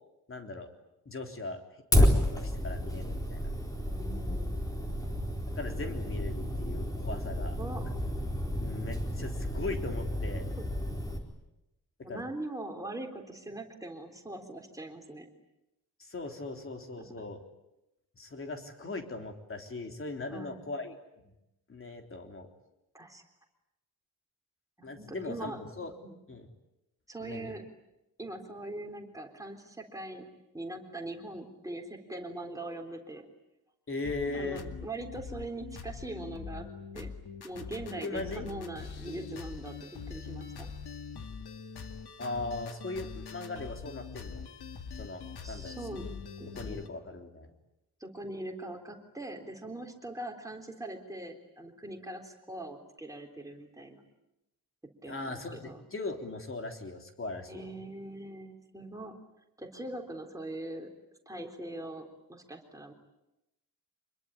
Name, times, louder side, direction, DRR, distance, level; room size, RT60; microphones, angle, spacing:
voice 1, 0.3-0.7 1.1-1.6 2.0-3.5 5.6-7.6 8.6-10.5 12.1-12.2 16.0-17.4 18.1-21.0 21.2-21.3 21.7-22.5 24.8-25.9 26.3-26.5 27.2-27.5 33.9-34.6 38.0-38.5 42.2-44.4 45.0-46.1 46.5-47.5 55.1-57.7, left 2 dB, 35° left, 4 dB, 3.6 m, -39 dB
Fire, 1.9-11.2, left 1 dB, 10° left, 4.1 m, -30 dB
voice 2, 3.9-4.6 7.6-7.8 12.0-15.3 17.0-17.1 20.3-20.6 22.9-23.2 24.8-25.6 26.0-26.2 27.1-27.6 28.2-30.3 30.5-33.3 34.3-36.7 36.9-37.1 37.4-40.7 45.4-46.1 46.4-46.9 48.0-54.0 55.0-55.8 57.5-59.1 59.6-60.9 61.3-62.9, right 2 dB, 10° right, 3 dB, 3.8 m, -41 dB
sound 1, 34.0-46.9, left 5 dB, 85° left, 2.2 m, -43 dB
26.0 x 22.0 x 10.0 m, 0.91 s
wide cardioid pair, 170°, 38 cm